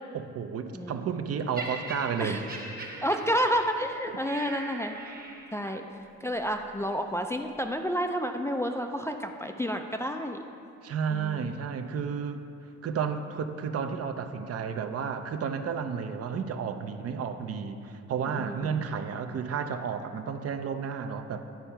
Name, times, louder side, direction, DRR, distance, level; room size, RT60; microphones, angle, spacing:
voice 1, 0.1-2.5 4.1-4.2 5.6-5.8 10.8-12.4 12.8-21.4, right 6 dB, 50° right, 7 dB, 0.6 m, -32 dB
voice 2, 0.7-1.0 2.2-2.4 3.0-5.0 5.5-5.8 6.2-10.4 11.1-11.6 18.3-18.8, equal, 10° left, 4 dB, 0.4 m, -30 dB
Laughter, 1.6-5.8 6.6-6.8, right 2 dB, 30° right, 1.0 m, -41 dB
10.5 x 4.4 x 5.7 m, 2.6 s
cardioid pair, 90°, 30 cm